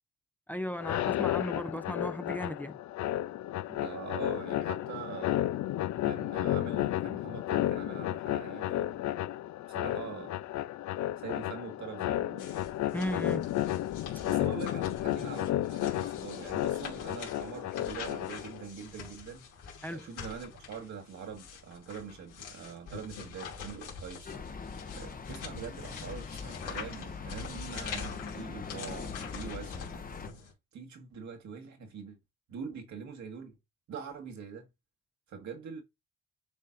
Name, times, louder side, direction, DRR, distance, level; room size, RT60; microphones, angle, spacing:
voice 1, 0.5-2.8 12.9-13.5 14.1-14.3 19.8-20.1, equal, 5° left, 0.6 m, -36 dB
sound 1, 0.8-18.6, left 13 dB, 65° left, 0.5 m, -32 dB
voice 2, 3.7-5.5 6.0-9.1 9.7-10.4 11.2-12.7 14.2-19.5 19.9-24.3 24.9-30.1 30.7-32.2 32.5-33.6 33.9-34.7 35.3-35.8, right 6 dB, 65° right, 1.8 m, -44 dB
sound 2, 12.4-30.5, left 6 dB, 85° left, 2.7 m, -45 dB
sound 3, 24.3-30.3, left 5 dB, 30° left, 0.9 m, -42 dB
10.5 x 4.2 x 2.6 m
cardioid pair, 90°, 30 cm